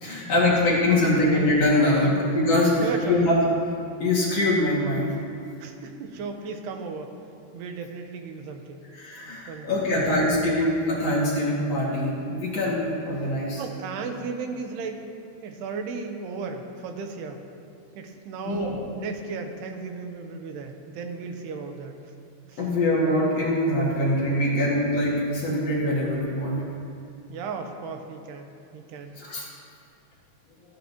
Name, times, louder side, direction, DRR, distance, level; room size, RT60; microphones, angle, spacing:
voice 1, 0.0-3.4 4.0-5.1 8.9-13.6 18.5-18.7 22.6-26.6 29.2-29.4, left 1 dB, 45° left, -6 dB, 2.8 m, -23 dB
voice 2, 0.7-1.2 2.0-2.2 2.8-3.3 5.6-7.2 7.5-8.9 9.5-10.3 13.6-15.1 15.4-17.4 18.0-21.9 22.5-22.6 27.3-29.1, right 4 dB, 85° right, 5 dB, 3.1 m, -35 dB
26.5 x 10.0 x 3.0 m, 2.8 s
omnidirectional pair, 4.6 m